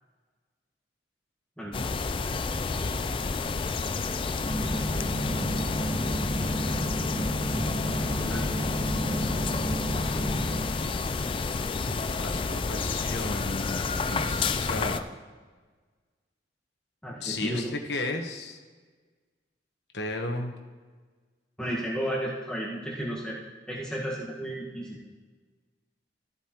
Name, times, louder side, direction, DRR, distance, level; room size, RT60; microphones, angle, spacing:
sound 1, 1.7-15.0, left 4 dB, 30° left, 0.3 m, -30 dB
sound 2, 4.5-10.6, equal, 65° right, 3.1 m, -31 dB
voice 1, 8.2-9.2 17.0-17.7 21.6-23.3 23.7-25.2, right 1 dB, 5° left, -6 dB, 1.5 m, -34 dB
voice 2, 12.1-15.0 17.2-18.6 19.9-20.5, left 2 dB, 65° left, 4 dB, 1.1 m, -34 dB
14.5 x 8.2 x 3.0 m, 1.4 s
head